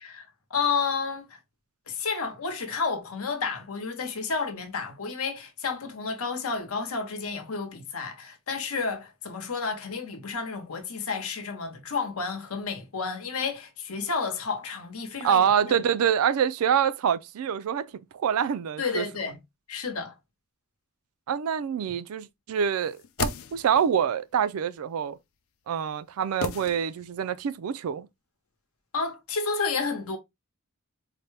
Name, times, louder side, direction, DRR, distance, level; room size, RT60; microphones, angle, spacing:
voice 1, 0.0-1.4 1.9-15.7 18.8-19.4 19.7-20.1 28.9-30.2, left 5 dB, 90° left, 0.9 m, -31 dB
voice 2, 15.2-17.9 18.1-19.1 21.3-25.2 25.7-28.1, right 8 dB, 85° right, 0.4 m, -26 dB
sound 1, 22.8-24.0 26.4-27.3 27.6-27.7, left 6 dB, 70° left, 0.4 m, -35 dB
4.1 x 2.2 x 3.2 m
head